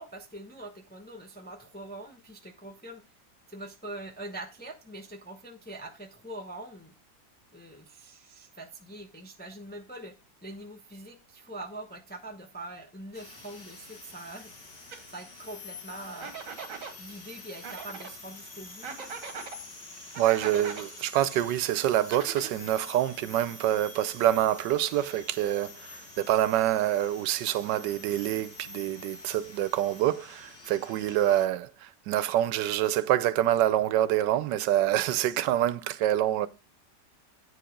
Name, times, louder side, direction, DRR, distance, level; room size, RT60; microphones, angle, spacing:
voice 1, 0.0-3.0 3.5-6.9 7.5-10.2 10.4-14.5 15.1-16.3 17.0-19.2, right 1 dB, 10° left, 0.5 m, -43 dB
sound 1, 13.1-31.5, left 3 dB, 75° left, 2.5 m, -47 dB
sound 2, 14.9-15.0 16.2-16.9 17.6-18.1 18.8-19.6 20.1-20.9 22.0-22.8, right 5 dB, 50° right, 1.6 m, -40 dB
voice 2, 20.2-36.5, right 12 dB, 80° right, 1.2 m, -26 dB
8.7 x 4.8 x 5.1 m
omnidirectional pair, 1.9 m